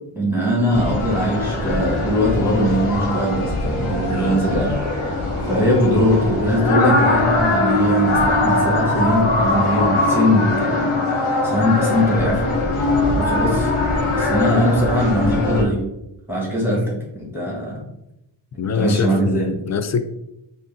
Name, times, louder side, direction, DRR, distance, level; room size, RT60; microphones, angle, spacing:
voice 1, 0.1-4.7 5.0-5.2 5.4-12.5 13.2-13.7 14.1-15.8 16.3-17.8 18.6-19.5, equal, 5° right, -5 dB, 1.3 m, -21 dB
sound 1, 0.7-15.6, left 2 dB, 75° left, 0.8 m, -21 dB
sound 2, 3.9-7.8, right 4 dB, 35° right, 0.5 m, -38 dB
voice 2, 4.1-4.4 18.6-20.0, left 6 dB, 35° left, 10 dB, 0.4 m, -24 dB
5.1 x 2.6 x 2.5 m, 0.86 s
cardioid pair, 55°, 50 cm